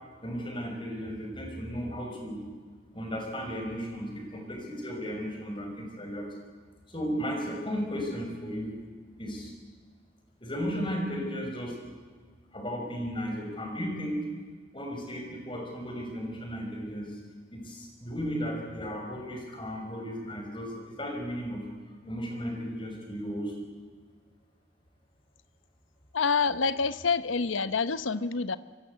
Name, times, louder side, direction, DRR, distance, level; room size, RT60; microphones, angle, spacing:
voice 1, 0.2-2.4 2.9-6.3 6.9-8.8 9.2-9.5 10.4-11.8 12.5-14.2 14.7-17.2 17.5-21.6 22.0-23.7, equal, 25° left, 2 dB, 5.7 m, -35 dB
voice 2, 26.1-28.6, left 5 dB, 90° left, 13 dB, 0.9 m, -27 dB
27.0 x 23.0 x 8.2 m, 1.5 s
head